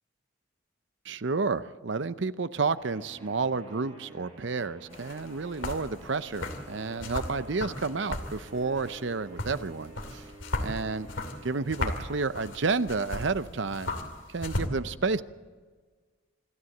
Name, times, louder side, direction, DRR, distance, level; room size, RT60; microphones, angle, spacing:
voice 1, 1.0-10.3 10.6-11.1 11.4-13.9 14.3-15.2, right 4 dB, 65° right, 14 dB, 0.7 m, -30 dB
sound 1, 2.7-13.0, right 2 dB, 30° right, 6.3 m, -51 dB
sound 2, 4.9-14.7, left 2 dB, 75° left, 2.7 m, -37 dB
26.5 x 12.5 x 7.8 m, 1.5 s
head